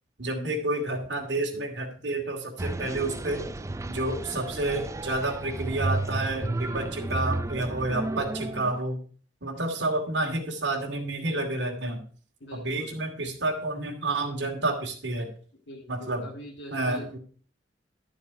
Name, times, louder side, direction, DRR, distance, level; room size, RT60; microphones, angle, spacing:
voice 1, 0.2-3.5 3.9-9.0 9.4-12.0 12.5-15.3 15.9-16.3 16.7-17.2, right 2 dB, 65° right, 1 dB, 2.5 m, -29 dB
sound 1, 2.6-8.8, right 2 dB, 15° right, 0.5 m, -32 dB
voice 2, 12.4-13.0 15.7-17.2, equal, 65° left, 1 dB, 1.9 m, -43 dB
11.0 x 7.1 x 4.8 m, 0.43 s
head